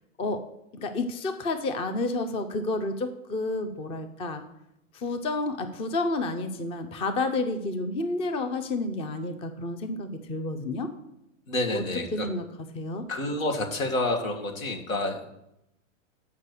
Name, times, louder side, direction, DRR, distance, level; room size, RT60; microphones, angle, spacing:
voice 1, 0.7-4.4 4.9-10.9 11.7-11.8 12.1-12.4 12.7-13.1, left 2 dB, 15° left, 8 dB, 0.5 m, -30 dB
voice 2, 11.5-12.3 13.1-15.2, left 2 dB, 85° left, 1 dB, 1.9 m, -28 dB
6.6 x 5.6 x 6.6 m, 0.83 s
hypercardioid pair, 125°, 40 cm